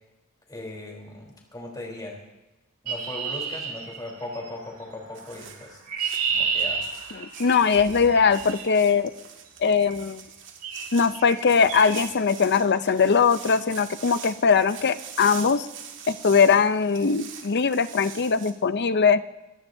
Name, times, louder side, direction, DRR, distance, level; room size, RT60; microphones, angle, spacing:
voice 1, 0.5-2.2 2.8-5.8 6.3-6.8, left 2 dB, 20° left, -1 dB, 3.7 m, -38 dB
Chirp tweet, 2.9-4.5 5.5-8.7 9.8-10.0 10.6-10.9 11.1-11.4 11.7-12.0, right 5 dB, 80° right, 4.4 m, -30 dB
sound 1, 5.1-18.5, right 7 dB, 60° right, 2.0 m, -43 dB
voice 2, 7.1-9.1 9.6-10.2 10.9-15.7 16.1-19.2, left 5 dB, 50° left, 13 dB, 0.6 m, -21 dB
26.0 x 18.5 x 2.7 m, 1.0 s
head